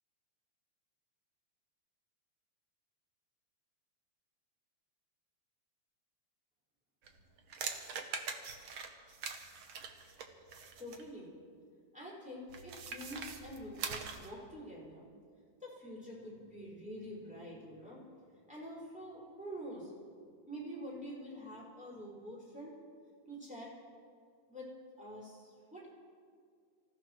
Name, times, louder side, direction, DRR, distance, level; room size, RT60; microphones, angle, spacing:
sound 1, 7.0-11.1 12.5-14.3, right 5 dB, 70° right, 1.2 m, -43 dB
voice 1, 10.8-11.3 11.9-15.1 15.6-18.0 18.5-19.9 20.5-22.7 23.3-23.7 24.5-24.7 25.0-25.9, equal, ahead, -7 dB, 5.0 m, -46 dB
25.5 x 15.5 x 3.2 m, 2.1 s
omnidirectional pair, 3.6 m